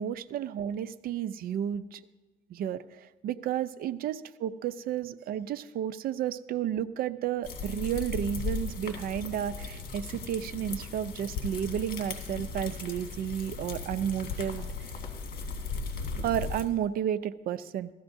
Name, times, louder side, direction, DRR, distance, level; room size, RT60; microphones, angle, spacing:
voice 1, 0.0-2.0 2.5-14.9 16.2-17.9, right 10 dB, 60° right, 14 dB, 0.5 m, -32 dB
sound 1, 7.4-16.7, left 4 dB, 55° left, 2.0 m, -37 dB
16.5 x 13.5 x 2.7 m, 1.3 s
cardioid pair, 110°, 17 cm